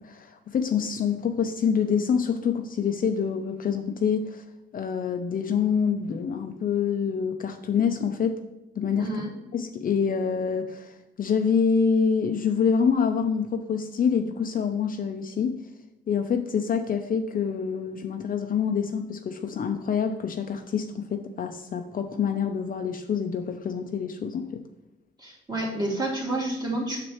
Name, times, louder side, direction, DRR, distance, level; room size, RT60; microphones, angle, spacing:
voice 1, 0.0-4.4 4.7-8.4 8.8-9.1 9.5-15.5 16.1-24.6, left 6 dB, 45° left, 6 dB, 0.6 m, -26 dB
voice 2, 9.0-9.3 25.2-27.0, right 1 dB, 20° right, -2 dB, 2.3 m, -29 dB
6.8 x 6.2 x 3.0 m, 0.99 s
cardioid pair, 90°, 20 cm